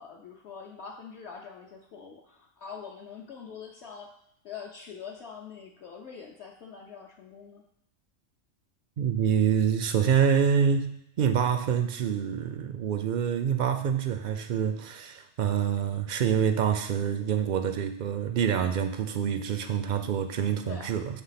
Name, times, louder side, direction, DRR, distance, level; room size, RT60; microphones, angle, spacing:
voice 1, 0.0-4.1 4.4-7.6 20.6-20.9, left 6 dB, 60° left, -1 dB, 0.9 m, -44 dB
voice 2, 9.0-10.9 11.2-21.2, right 8 dB, 70° right, 8 dB, 0.4 m, -26 dB
8.1 x 3.4 x 5.7 m, 0.79 s
omnidirectional pair, 1.4 m